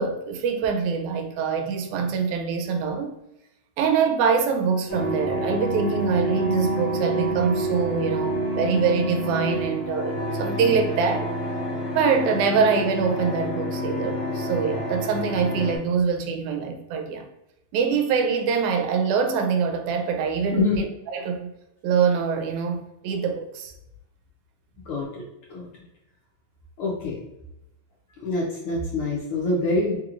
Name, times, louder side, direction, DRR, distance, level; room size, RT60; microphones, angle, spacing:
voice 1, 0.0-3.1 3.8-11.3 11.9-17.3 17.7-21.5 21.8-23.7, right 6 dB, 80° right, 1.9 m, -24 dB
sound 1, 4.9-15.8, equal, 60° left, 1.4 m, -28 dB
voice 2, 24.9-25.2 25.5-25.7 26.8-27.2 28.2-30.0, left 3 dB, 80° left, 1.2 m, -25 dB
4.5 x 3.0 x 2.4 m
omnidirectional pair, 3.4 m